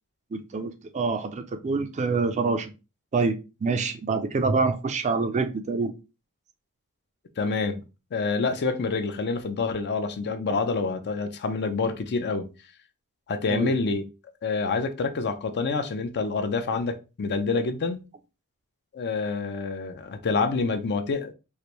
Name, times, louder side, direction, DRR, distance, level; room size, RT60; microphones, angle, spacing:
voice 1, 0.3-2.7 3.1-5.9 10.5-10.6 13.5-13.7, right 4 dB, 30° right, 0.3 m, -26 dB
voice 2, 7.4-7.8 8.1-12.5 13.3-14.0 14.4-18.0 18.9-21.3, left 4 dB, 50° left, 0.5 m, -27 dB
3.2 x 2.5 x 2.9 m
head